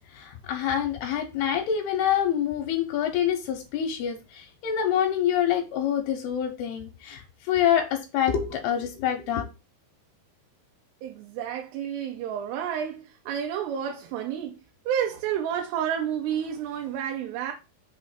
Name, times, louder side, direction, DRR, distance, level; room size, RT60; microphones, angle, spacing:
voice 1, 0.1-9.5, left 9 dB, 75° left, 2.8 m, -26 dB
voice 2, 11.0-14.6 14.9-17.5, right 9 dB, 90° right, 2.9 m, -30 dB
6.5 x 3.1 x 5.8 m
omnidirectional pair, 4.7 m